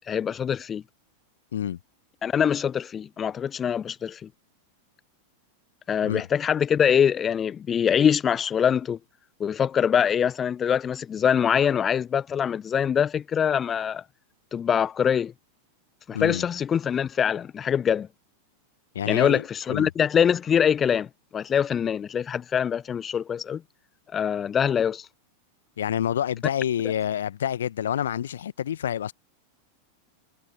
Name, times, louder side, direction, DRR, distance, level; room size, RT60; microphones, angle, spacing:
voice 1, 0.1-0.8 2.2-4.3 5.9-9.0 9.4-14.0 14.5-15.3 16.1-18.1 19.1-21.1 21.3-23.6 24.1-25.1, left 8 dB, 25° left, 0.6 m, -24 dB
voice 2, 16.1-16.4 18.9-19.9 25.8-29.1, left 10 dB, 65° left, 1.3 m, -28 dB
figure-of-eight pair, 90°, 0 cm